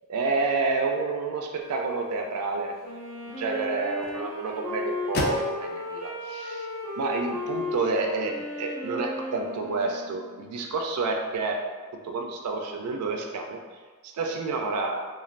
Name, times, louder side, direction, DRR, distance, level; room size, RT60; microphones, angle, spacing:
voice 1, 0.1-2.8 3.2-6.7 7.0-11.6 12.0-13.6 14.2-15.0, right 3 dB, 90° right, 2 dB, 0.4 m, -29 dB
sound 1, 1.6-7.8, left 2 dB, 45° left, 0.3 m, -39 dB
Wind instrument woodwind instrument, 2.8-10.5, left 1 dB, ahead, 1.1 m, -35 dB
3.1 x 2.3 x 2.4 m, 1.4 s
head